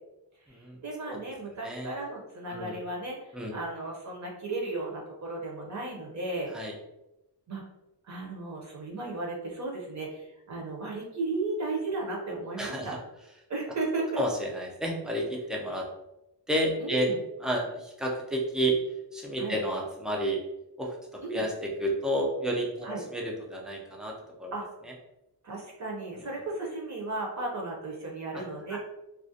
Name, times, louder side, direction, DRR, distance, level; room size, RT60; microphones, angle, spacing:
voice 1, 0.8-6.5 7.5-7.6 8.0-13.0 13.5-14.2 16.8-17.2 19.4-19.6 21.2-21.4 22.8-23.0 24.5-24.7 25.4-28.8, right 2 dB, 40° right, -1 dB, 0.6 m, -35 dB
voice 2, 1.6-1.9 2.5-2.7 3.3-3.5 6.5-6.7 12.6-13.0 14.2-15.8 16.5-17.1 17.4-18.8 19.1-20.4 20.8-24.1 24.4-24.5 24.8-24.9 28.3-28.4 28.7-28.8, right 1 dB, ahead, -1 dB, 0.3 m, -31 dB
2.4 x 2.0 x 2.6 m, 0.91 s
wide cardioid pair, 130°, 43 cm